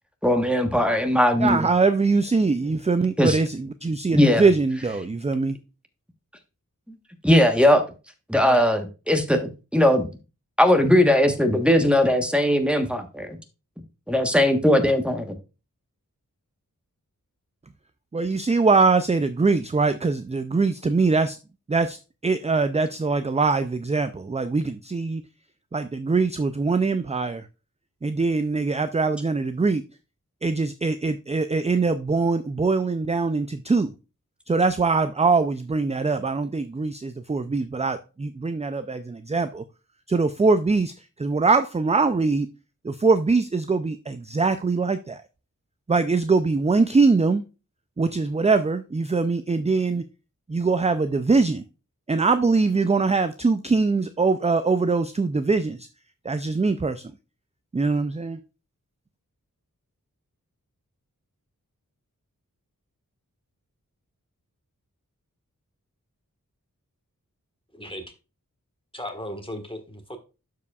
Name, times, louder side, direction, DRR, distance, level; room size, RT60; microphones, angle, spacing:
voice 1, 0.2-1.7 3.2-3.4 4.1-4.4 7.2-7.8 8.3-10.1 10.6-13.4 14.1-15.4, left 1 dB, 5° right, 1.2 m, -19 dB
voice 2, 1.4-5.6 8.3-8.6 18.1-21.4 21.7-22.0 22.2-25.2 25.7-27.5 28.0-29.8 30.4-33.9 34.5-39.6 40.1-42.5 42.8-45.2 45.9-47.4 48.0-50.0 50.5-51.6 52.1-55.9 56.2-57.1 57.7-58.4, right 4 dB, 20° right, 0.4 m, -22 dB
voice 3, 67.7-68.0 68.9-70.2, left 1 dB, 15° left, 1.4 m, -36 dB
12.0 x 4.8 x 2.4 m
wide cardioid pair, 50°, 33 cm